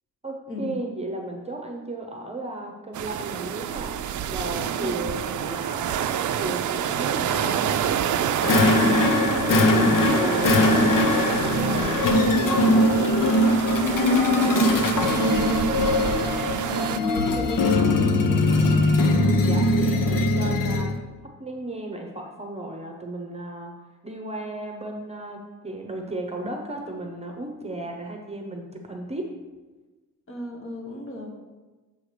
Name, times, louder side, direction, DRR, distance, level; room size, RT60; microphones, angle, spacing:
voice 1, 0.2-3.9 4.3-5.9 6.4-7.8 8.4-10.7 10.9-12.8 19.1-21.0 21.4-23.7 24.0-29.3, right 2 dB, 20° right, 2 dB, 0.8 m, -34 dB
sound 1, 2.9-17.0, right 9 dB, 65° right, 0.5 m, -28 dB
sound 2, 8.4-21.0, left 2 dB, 80° left, 0.8 m, -21 dB
voice 2, 14.0-15.2 15.4-16.2 16.8-18.7 30.3-31.3, left 1 dB, 40° left, 0 dB, 1.4 m, -35 dB
6.9 x 4.8 x 6.6 m, 1.2 s
wide cardioid pair, 170°, 32 cm